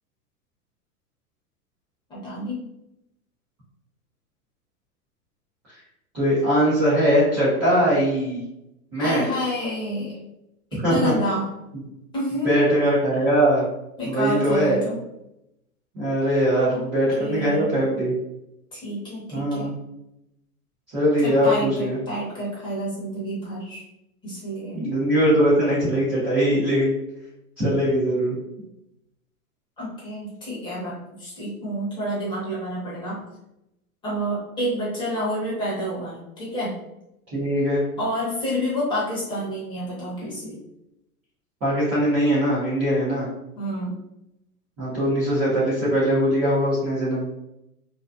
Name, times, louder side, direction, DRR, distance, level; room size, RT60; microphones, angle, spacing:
voice 1, 2.1-2.6 9.0-10.2 10.7-11.5 12.1-12.7 14.0-15.0 16.7-16.8 17.2-17.7 18.7-19.7 21.2-23.8 24.2-24.8 29.8-33.2 34.0-36.7 38.0-40.6 43.5-44.0, equal, 10° left, -7 dB, 0.8 m, -29 dB
voice 2, 6.1-8.4 8.9-9.2 10.7-11.1 12.4-13.6 14.0-14.8 15.9-18.1 19.3-19.7 20.9-22.0 24.7-26.9 27.6-28.3 37.3-37.8 41.6-43.3 44.8-47.3, equal, 10° right, -12 dB, 0.4 m, -21 dB
2.5 x 2.2 x 2.3 m, 0.87 s
hypercardioid pair, 125°, 46 cm